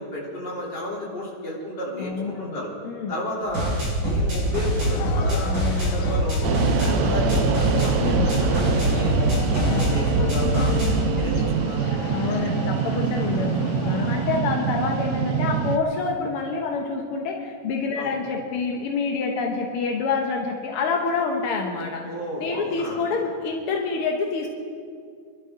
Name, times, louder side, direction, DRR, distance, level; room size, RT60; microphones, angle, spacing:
voice 1, 0.0-2.7 3.1-6.4 6.8-9.2 9.5-10.7 11.2-11.9 18.0-18.1 22.0-23.0, left 1 dB, 30° left, -5 dB, 3.8 m, -32 dB
voice 2, 2.0-2.6 2.8-3.1 5.4-6.1 8.0-8.4 9.5-9.9 12.1-22.1 22.4-24.5, left 4 dB, 65° left, 1 dB, 1.4 m, -27 dB
sound 1, 3.4-11.0, equal, 30° right, 5.9 m, -24 dB
sound 2, 4.9-14.4, left 9 dB, 85° left, 2.3 m, -35 dB
sound 3, 6.4-15.8, right 8 dB, 85° right, 1.5 m, -25 dB
26.0 x 12.5 x 3.8 m, 2.2 s
omnidirectional pair, 3.9 m